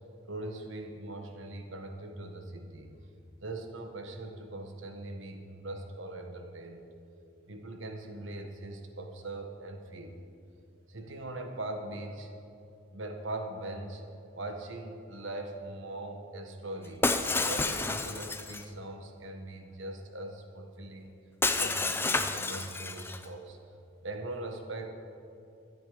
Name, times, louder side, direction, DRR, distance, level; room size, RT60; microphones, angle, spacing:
voice 1, 0.3-3.0 3.4-6.9 7.5-10.2 10.9-12.3 12.9-14.0 14.3-17.1 17.4-21.1 21.5-23.6 24.0-24.9, right 2 dB, 70° right, 5 dB, 1.4 m, -41 dB
Shatter, 17.0-18.6 21.4-23.2, left 3 dB, 10° left, 0.5 m, -30 dB
23.5 x 8.6 x 5.0 m, 2.6 s
head